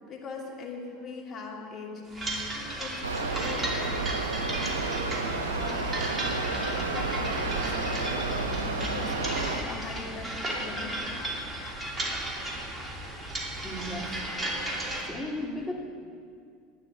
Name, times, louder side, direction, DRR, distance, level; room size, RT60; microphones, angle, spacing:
voice 1, 0.1-6.0 6.8-11.1, left 3 dB, 40° left, -1 dB, 2.8 m, -41 dB
sound 1, 2.1-15.0, right 1 dB, 20° right, 2.7 m, -35 dB
sound 2, 3.0-9.6, right 3 dB, 90° right, 1.0 m, -31 dB
voice 2, 13.6-14.1 15.0-15.7, left 1 dB, 5° left, -1 dB, 2.1 m, -35 dB
11.5 x 9.4 x 7.5 m, 2.3 s
hypercardioid pair, 80°, 0 cm